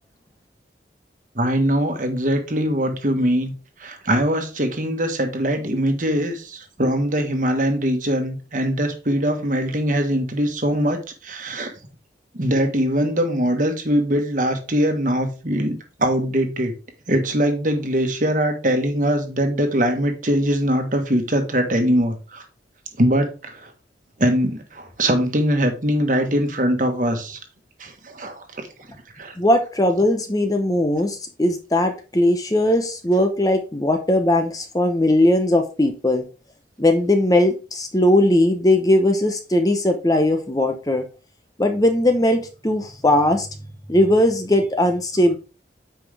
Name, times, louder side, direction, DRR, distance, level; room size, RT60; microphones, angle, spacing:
voice 1, 1.3-3.5 3.8-11.7 12.3-16.7 17.1-22.4 23.0-23.7 24.2-27.4 27.8-28.7 29.2-29.3, equal, 45° right, 5 dB, 1.4 m, -22 dB
voice 2, 29.4-36.2 36.8-41.0 41.6-43.5 43.9-45.4, left 1 dB, 20° left, 6 dB, 0.8 m, -19 dB
8.9 x 5.1 x 3.4 m, 0.33 s
head